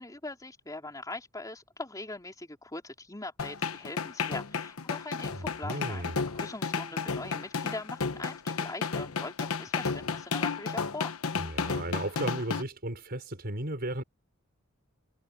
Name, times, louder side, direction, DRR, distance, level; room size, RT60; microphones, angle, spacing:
voice 1, 0.0-11.1, left 2 dB, 15° left, 3.6 m, -41 dB
sound 1, 3.4-12.6, left 5 dB, 85° left, 1.1 m, -32 dB
voice 2, 5.3-6.2 11.4-14.0, right 1 dB, 45° right, 5.4 m, -35 dB
head